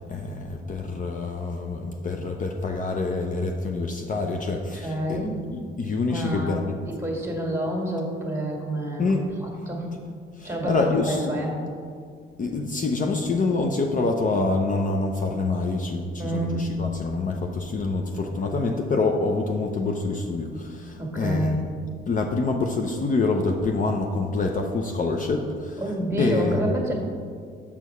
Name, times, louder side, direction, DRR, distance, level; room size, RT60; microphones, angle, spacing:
voice 1, 0.1-6.8 9.0-9.2 10.4-11.3 12.4-21.5 22.1-25.8 26.2-26.6, left 3 dB, 40° left, 3 dB, 0.6 m, -26 dB
voice 2, 4.8-5.3 5.8-6.6 6.9-9.9 10.4-11.6 16.2-16.6 21.0-21.6 25.8-26.9, right 1 dB, 15° right, 0 dB, 1.8 m, -28 dB
7.2 x 4.6 x 5.4 m, 2.1 s
cardioid pair, 90°, 20 cm